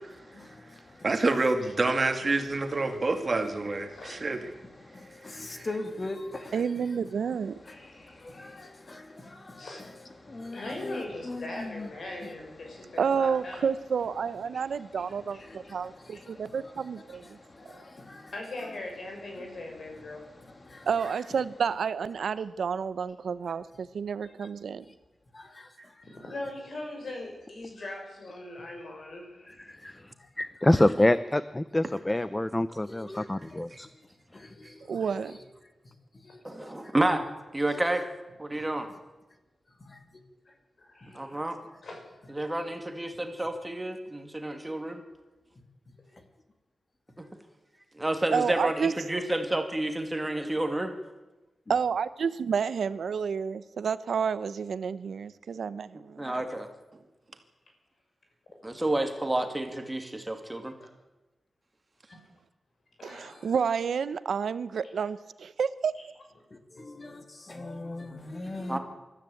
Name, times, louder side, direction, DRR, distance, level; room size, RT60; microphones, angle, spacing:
voice 1, 0.3-1.2 2.9-3.0 3.8-7.0 7.6-11.9 12.2-12.3 12.6-13.2 14.5-18.3 18.6-18.7 19.3-21.2 24.2-24.5 25.3-26.3 27.8-27.9 30.0-30.3 30.7-30.8 32.9-33.6 34.3-35.4 35.8-36.9 37.7-37.9 41.0-41.3 45.9-46.0 51.7-51.8 63.1-63.2 66.5-68.8, left 2 dB, 30° left, 7 dB, 2.4 m, -43 dB
voice 2, 1.0-4.4 5.5-5.7 33.7-33.8, right 3 dB, 35° right, 6 dB, 2.2 m, -27 dB
voice 3, 6.5-7.6 13.0-17.4 20.9-24.9 34.9-35.4 48.3-48.9 51.7-56.4 63.0-66.0, right 6 dB, 90° right, 15 dB, 0.8 m, -30 dB
voice 4, 7.6-8.6 9.6-9.9 10.5-13.7 14.5-14.6 15.3-15.4 16.1-16.2 18.3-20.3 25.4-25.6 26.1-29.7 34.9-35.1 40.8-41.4 41.8-42.0 63.0-63.5, left 2 dB, 55° left, 2 dB, 6.4 m, -41 dB
voice 5, 30.4-33.9, left 1 dB, 15° left, 14 dB, 0.6 m, -25 dB
voice 6, 36.4-37.2 37.5-38.0 38.4-38.9 41.1-41.6 42.3-45.0 47.2-47.3 48.0-50.9 56.2-56.7 58.6-60.7 68.7-68.8, right 1 dB, 15° right, 6 dB, 2.4 m, -30 dB
23.5 x 14.0 x 8.5 m, 1.1 s
wide cardioid pair, 140°, 0 cm